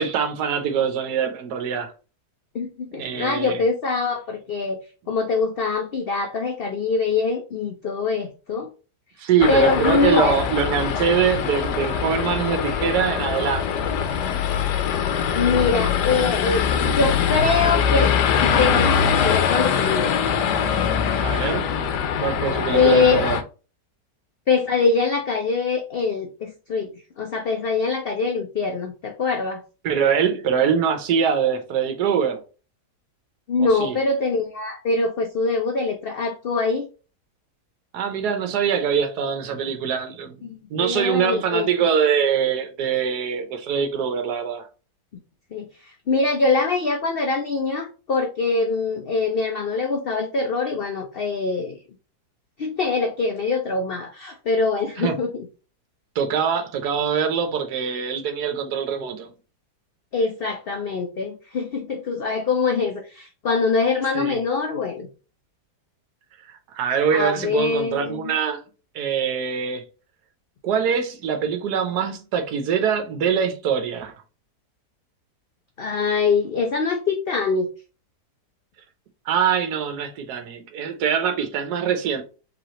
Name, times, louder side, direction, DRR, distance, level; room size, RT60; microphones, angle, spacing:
voice 1, 0.0-1.9 3.0-3.6 9.2-13.6 21.2-21.7 22.2-23.4 29.8-32.4 33.6-33.9 37.9-44.7 55.0-55.2 56.1-59.3 64.1-64.4 66.5-68.6 68.9-69.8 70.6-74.1 79.3-82.2, right 7 dB, 75° right, 1.4 m, -23 dB
voice 2, 2.5-4.8 5.1-8.7 9.5-10.4 15.3-20.2 22.7-23.3 24.5-29.6 33.5-36.9 40.4-41.7 45.5-51.8 52.6-55.5 59.0-59.1 60.1-65.1 67.1-68.3 75.8-77.7, left 4 dB, 55° left, 0.7 m, -23 dB
sound 1, 9.4-23.4, left 7 dB, 85° left, 1.3 m, -22 dB
5.0 x 3.3 x 3.0 m
omnidirectional pair, 1.8 m